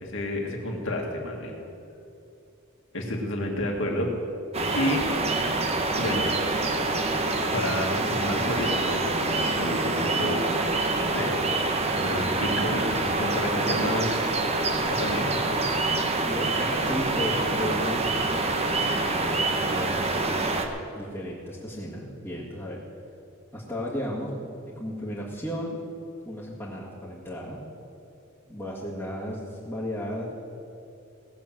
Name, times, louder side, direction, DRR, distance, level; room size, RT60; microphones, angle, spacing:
voice 1, 0.0-1.6 2.9-4.1 4.7-5.1 6.0-6.3 7.5-10.5 11.0-11.3 12.0-14.3 14.9-15.3, left 1 dB, 60° left, 0 dB, 2.2 m, -30 dB
sound 1, 4.5-20.7, right 2 dB, 30° right, 1.0 m, -26 dB
voice 2, 15.0-15.4 16.2-18.1 18.9-19.3 19.7-20.5 20.9-22.8 23.5-25.8 26.3-27.6 28.5-30.3, equal, 10° left, -8 dB, 2.0 m, -34 dB
18.0 x 7.1 x 7.6 m, 2.7 s
head